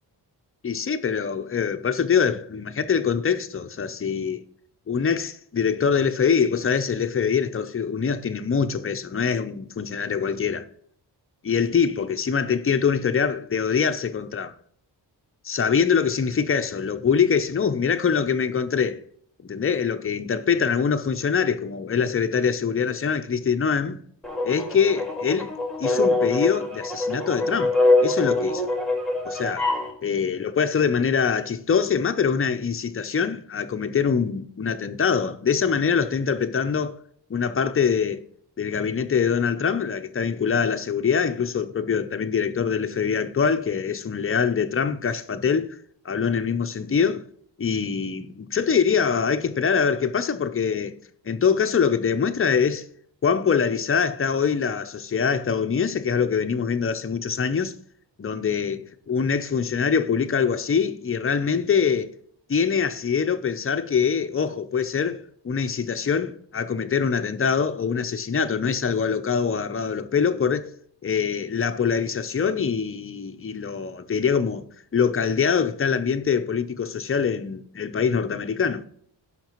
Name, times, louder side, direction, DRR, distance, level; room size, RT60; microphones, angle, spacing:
voice 1, 0.6-4.4 4.9-10.7 11.4-14.5 15.4-19.0 19.4-24.0 24.4-25.5 25.8-27.8 28.0-28.6 29.2-29.7 30.0-37.0 37.3-38.2 38.6-45.7 46.0-47.2 47.6-51.0 51.3-52.9 53.2-57.7 58.2-62.1 62.5-70.7 71.0-74.6 74.9-78.8, left 6 dB, 30° left, 0.7 m, -24 dB
sound 1, 24.2-29.9, left 2 dB, ahead, 2.1 m, -24 dB
17.5 x 5.9 x 3.1 m
wide cardioid pair, 105°, 42 cm